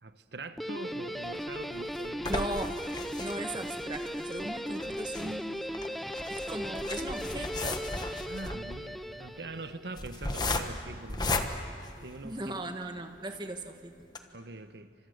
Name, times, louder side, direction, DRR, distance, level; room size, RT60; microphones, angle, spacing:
voice 1, 0.0-2.5 8.2-11.7 12.0-12.5 14.3-14.9, right 2 dB, 70° right, 10 dB, 1.1 m, -43 dB
Guitar, 0.6-9.9, equal, ahead, 0.6 m, -37 dB
sound 1, 1.2-12.6 13.2-13.3 13.6-13.7 14.0-14.2, left 2 dB, 25° left, 1.2 m, -36 dB
voice 2, 2.3-2.8 3.2-5.6 6.3-7.8 12.2-14.1, right 1 dB, 25° right, 6 dB, 1.5 m, -38 dB
29.5 x 26.0 x 6.6 m, 2.3 s
head